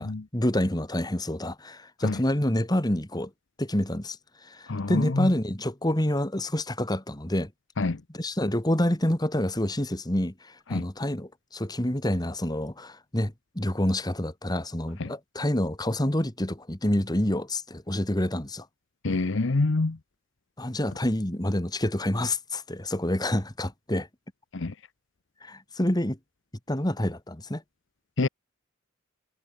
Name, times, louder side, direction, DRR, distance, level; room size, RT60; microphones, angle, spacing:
voice 1, 0.0-3.3 3.6-4.2 4.4-7.5 8.1-18.7 20.6-24.1 25.4-26.2 26.7-27.6, left 1 dB, 20° left, 2.1 m, -27 dB
voice 2, 4.7-5.3 7.8-8.0 10.7-10.9 15.0-15.1 19.0-20.0 24.5-24.7 28.2-28.3, left 3 dB, 65° left, 0.8 m, -26 dB
head